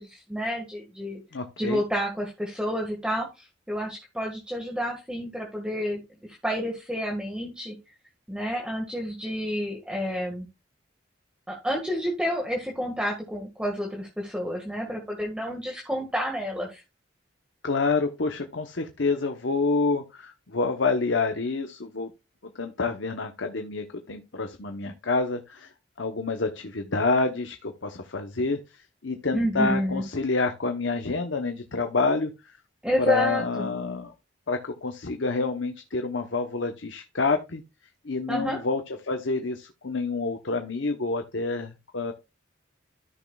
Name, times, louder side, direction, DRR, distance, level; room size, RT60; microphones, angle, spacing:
voice 1, 0.0-1.2 1.6-7.7 8.3-10.5 11.5-16.8 29.3-30.0 32.8-33.7 38.3-38.6, equal, 5° right, 0 dB, 1.7 m, -29 dB
voice 2, 1.3-1.8 17.6-22.1 22.4-25.7 26.0-32.6 33.0-34.1 34.5-37.6 38.0-42.1, left 3 dB, 70° left, 6 dB, 0.9 m, -28 dB
14.0 x 6.2 x 2.3 m, 0.25 s
head